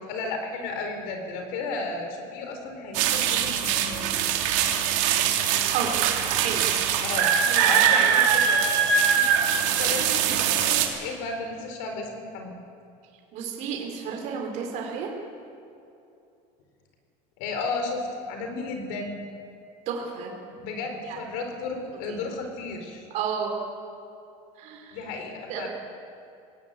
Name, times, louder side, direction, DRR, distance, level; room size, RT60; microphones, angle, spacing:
voice 1, 0.1-4.3 7.0-7.3 7.6-12.6 17.4-19.3 20.5-23.1 24.9-25.7, left 3 dB, 65° left, 4 dB, 4.4 m, -34 dB
sound 1, 2.9-10.9, right 8 dB, 75° right, 2.8 m, -22 dB
voice 2, 5.7-6.8 7.4-7.8 8.2-8.3 13.3-15.1 19.9-20.3 21.0-21.2 22.1-22.2 23.1-23.6 24.6-25.0 25.5-25.7, right 6 dB, 45° right, 1 dB, 4.4 m, -32 dB
20.0 x 17.0 x 9.2 m, 2.7 s
cardioid pair, 175°, 17 cm